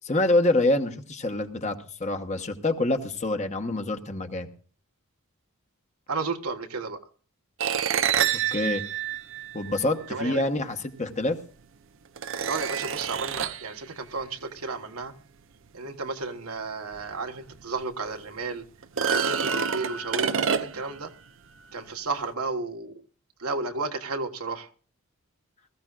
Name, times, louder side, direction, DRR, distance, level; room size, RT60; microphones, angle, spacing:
voice 1, 0.1-4.5 8.5-8.8 9.5-11.4, left 2 dB, 30° left, 1.1 m, -26 dB
voice 2, 6.1-7.0 10.1-10.5 12.5-15.1 15.7-18.6 19.0-21.1 21.7-22.9 23.4-24.7, right 3 dB, 80° right, 1.4 m, -33 dB
sound 1, 7.6-10.1 11.3-11.4 12.2-13.7 17.0-17.1 17.5-17.6 18.8-21.0, right 7 dB, 60° right, 0.6 m, -27 dB
21.0 x 14.5 x 2.4 m
head